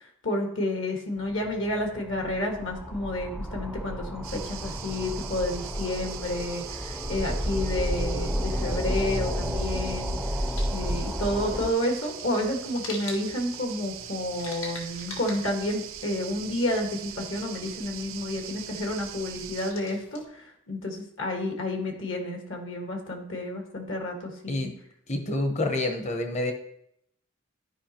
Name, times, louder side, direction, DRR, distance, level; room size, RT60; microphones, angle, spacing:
voice 1, 0.0-24.7, left 1 dB, 70° left, 2 dB, 1.6 m, -30 dB
sound 1, 1.2-11.7, equal, ahead, 0.5 m, -31 dB
sound 2, 4.2-19.7, right 10 dB, 80° right, 0.7 m, -41 dB
sound 3, 10.4-20.2, left 3 dB, 85° left, 1.6 m, -46 dB
voice 2, 25.1-26.5, left 2 dB, 35° left, 5 dB, 0.8 m, -27 dB
13.0 x 5.0 x 2.9 m, 0.75 s
head